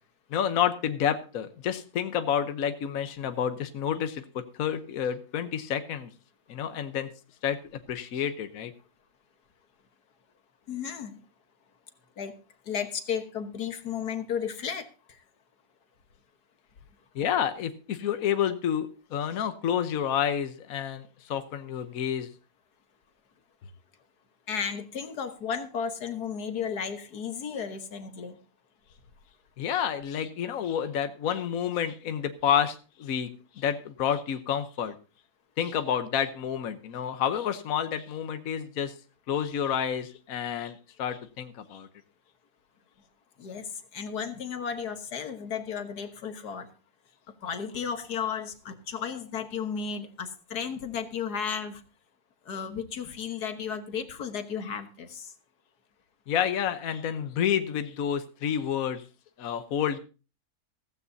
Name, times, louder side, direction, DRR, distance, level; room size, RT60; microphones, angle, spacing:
voice 1, 0.3-6.1 6.5-7.1 7.4-7.6 7.9-8.7 17.1-22.3 29.6-33.3 33.5-34.9 35.6-38.9 39.3-41.9 56.3-59.0 59.4-60.0, left 9 dB, 65° left, 9 dB, 1.3 m, -29 dB
voice 2, 10.7-11.1 12.2-12.3 12.7-15.2 24.5-28.4 43.4-46.7 47.4-51.8 52.5-55.3, left 7 dB, 85° left, 8 dB, 1.9 m, -34 dB
15.5 x 15.0 x 2.7 m, 0.34 s
omnidirectional pair, 1.6 m